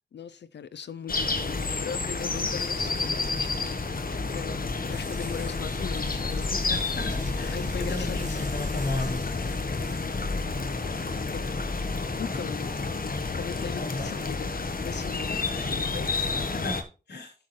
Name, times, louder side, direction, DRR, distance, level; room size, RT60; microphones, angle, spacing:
voice 1, 0.1-6.6 7.5-8.6 11.3-11.5 12.2-12.7 13.4-14.5 14.8-16.3, left 7 dB, 90° left, 0.5 m, -39 dB
sound 1, 1.1-16.8, left 3 dB, 55° left, 1.2 m, -30 dB
sound 2, 4.9-10.1, right 2 dB, 45° right, 2.5 m, -48 dB
voice 2, 6.7-9.6 13.7-14.1 15.3-15.8 16.5-17.3, left 2 dB, 70° left, 2.9 m, -36 dB
12.0 x 6.5 x 3.1 m
cardioid pair, 45°, 18 cm